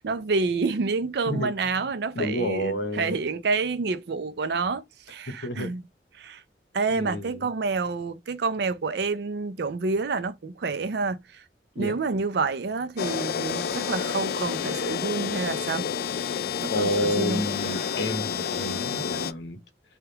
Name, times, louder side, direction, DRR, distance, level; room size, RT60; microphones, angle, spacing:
voice 1, 0.0-5.8 6.1-6.4 6.7-11.4 11.8-15.9 16.6-17.4, right 4 dB, 65° right, 0.5 m, -28 dB
voice 2, 2.1-3.2 5.4-5.7 6.9-7.5 11.8-11.9 16.7-19.6, left 1 dB, 85° left, 0.8 m, -29 dB
sound 1, 13.0-19.3, left 7 dB, 60° left, 0.3 m, -29 dB
3.4 x 2.3 x 2.8 m
head